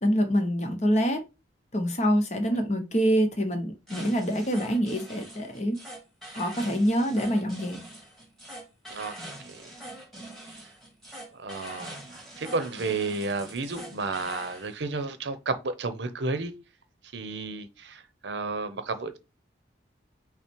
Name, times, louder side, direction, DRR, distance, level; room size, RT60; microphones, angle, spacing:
voice 1, 0.0-1.2 1.7-5.8 6.4-7.8, equal, 40° left, 0.9 m, -25 dB
sound 1, 3.9-14.7, right 1 dB, ahead, 1.7 m, -43 dB
voice 2, 11.4-16.5 17.1-19.2, right 3 dB, 70° right, 0.7 m, -32 dB
5.7 x 2.1 x 4.5 m
head